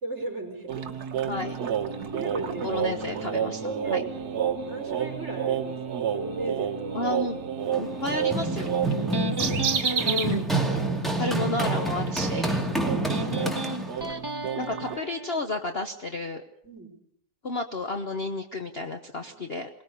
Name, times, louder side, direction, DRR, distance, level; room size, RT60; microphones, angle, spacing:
voice 1, 0.0-0.8 2.0-2.8 3.6-4.2 4.7-7.0 9.0-10.2 16.6-17.0 19.2-19.3, right 2 dB, 35° right, 2 dB, 5.0 m, -36 dB
sound 1, 0.7-10.4 10.7-10.8 11.2-15.0, right 8 dB, 60° right, 1.7 m, -30 dB
voice 2, 2.6-3.6 3.9-4.0 6.9-7.4 7.8-8.7 10.1-10.4 11.2-12.7 13.3-13.9 14.6-16.4 17.4-19.7, left 2 dB, 40° left, 5 dB, 1.1 m, -31 dB
Run, 7.7-14.1, right 2 dB, ahead, 2.3 m, -28 dB
Electric guitar, 8.4-15.4, right 3 dB, 15° right, 1.0 m, -34 dB
22.5 x 19.0 x 6.8 m, 0.71 s
omnidirectional pair, 2.0 m